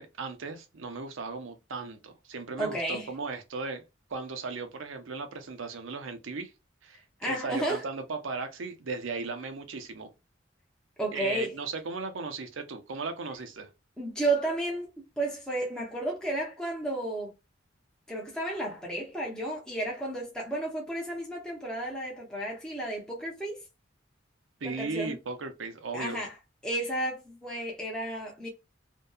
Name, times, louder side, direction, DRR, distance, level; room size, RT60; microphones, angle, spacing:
voice 1, 0.0-3.8 4.1-6.5 6.8-10.1 11.1-13.7 24.6-26.2, right 4 dB, 90° right, 0.6 m, -37 dB
voice 2, 2.6-3.1 7.2-7.9 11.0-11.5 14.0-17.3 18.1-23.6 24.6-25.2 25.9-26.4 26.6-28.5, right 1 dB, 5° left, 0.6 m, -32 dB
2.6 x 2.2 x 2.3 m
head